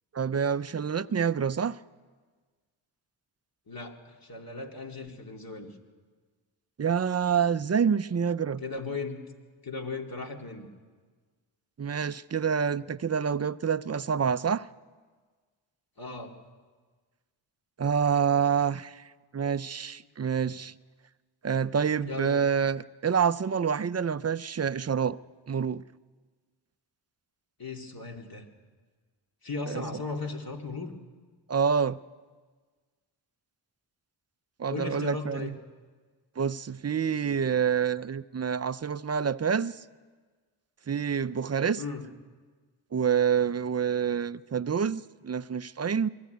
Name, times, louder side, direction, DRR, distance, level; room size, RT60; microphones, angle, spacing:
voice 1, 0.1-1.8 6.8-8.6 11.8-14.7 17.8-19.1 19.3-20.7 21.4-25.2 25.5-25.8 29.7-29.8 31.5-32.0 34.6-35.5 36.4-39.8 40.9-41.8 42.9-46.1, right 7 dB, 30° right, 0.6 m, -27 dB
voice 2, 3.7-5.7 8.6-9.2 9.6-10.7 16.0-16.3 22.0-22.4 27.6-28.5 29.4-30.9 34.7-35.5 41.7-42.0, left 3 dB, 45° left, 2.7 m, -36 dB
23.0 x 13.5 x 9.4 m
cardioid pair, 50°, 48 cm